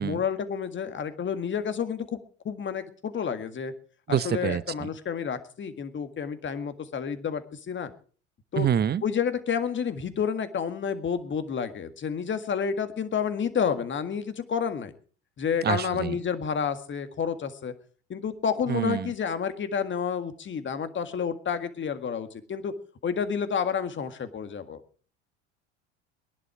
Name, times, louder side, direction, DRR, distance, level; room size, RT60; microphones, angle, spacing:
voice 1, 0.0-2.2 2.5-3.7 4.1-7.9 8.5-8.7 9.0-14.9 15.4-17.7 18.1-22.7 23.0-24.8, left 7 dB, 35° left, 10 dB, 1.8 m, -30 dB
voice 2, 4.1-4.9 8.6-9.0 15.6-16.2 18.7-19.1, right 9 dB, 30° right, 18 dB, 0.8 m, -27 dB
20.0 x 11.0 x 4.8 m, 0.44 s
hypercardioid pair, 70°, 35 cm